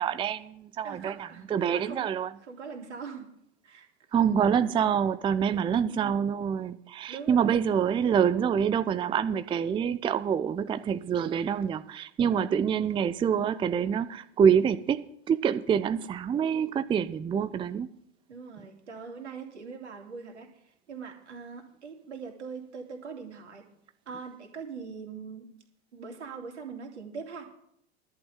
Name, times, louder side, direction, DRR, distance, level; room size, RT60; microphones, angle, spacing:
voice 1, 0.0-2.3 4.1-17.9, right 7 dB, 15° right, 13 dB, 0.5 m, -26 dB
voice 2, 0.8-2.1 2.4-3.3 3.6-3.9 5.5-6.1 7.1-7.6 12.2-12.5 18.3-20.5 20.9-23.6 24.1-25.5 25.9-27.5, right 5 dB, 80° right, 3 dB, 2.8 m, -42 dB
11.5 x 6.1 x 8.8 m, 0.71 s
hypercardioid pair, 90°, 34 cm